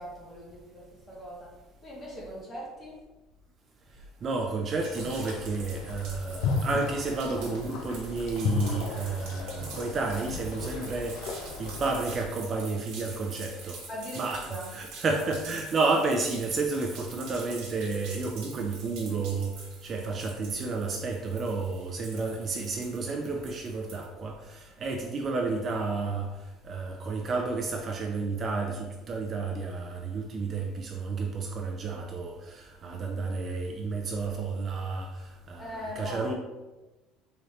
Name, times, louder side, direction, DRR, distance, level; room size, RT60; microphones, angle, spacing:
voice 1, 0.0-1.5 1.8-3.0 13.9-14.7 35.6-36.3, equal, 25° left, -4 dB, 1.2 m, -40 dB
voice 2, 4.2-13.8 14.2-26.3 26.6-36.3, right 3 dB, 30° right, 2 dB, 0.4 m, -31 dB
sound 1, 4.8-24.1, right 4 dB, 75° right, 1.0 m, -46 dB
sound 2, 4.9-12.2, left 4 dB, 75° left, 0.6 m, -34 dB
3.9 x 2.5 x 3.2 m, 1.1 s
cardioid pair, 140°, 0 cm